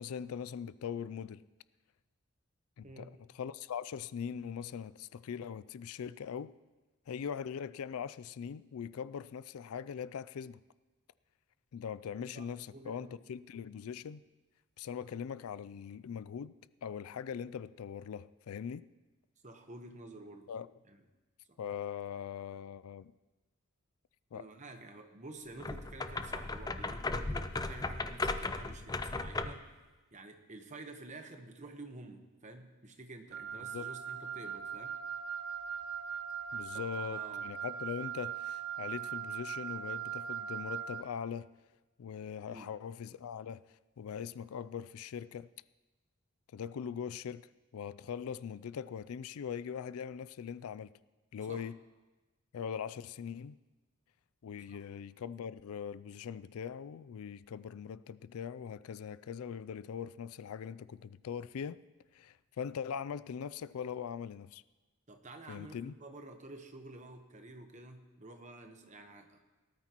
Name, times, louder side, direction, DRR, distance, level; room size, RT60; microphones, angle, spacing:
voice 1, 0.0-1.4 2.8-6.5 7.1-10.6 11.7-14.2 14.8-16.5 16.8-18.8 20.5-20.7 21.6-23.1 24.3-24.5 33.6-33.9 36.5-41.5 42.0-45.5 46.5-50.9 51.3-51.8 52.5-53.6 54.4-61.8 62.1-64.6 65.5-66.0, left 7 dB, 80° left, 0.4 m, -41 dB
voice 2, 2.8-3.1 12.3-13.2 19.4-20.5 20.9-21.0 21.5-21.6 24.3-29.6 30.1-35.0 36.7-37.5 42.5-42.7 51.5-51.7 54.7-54.8 65.1-69.4, right 2 dB, 35° right, 1.0 m, -50 dB
sound 1, 25.6-29.7, left 3 dB, 20° left, 0.4 m, -36 dB
Wind instrument woodwind instrument, 33.3-41.1, right 8 dB, 80° right, 0.5 m, -40 dB
18.5 x 13.0 x 3.0 m
head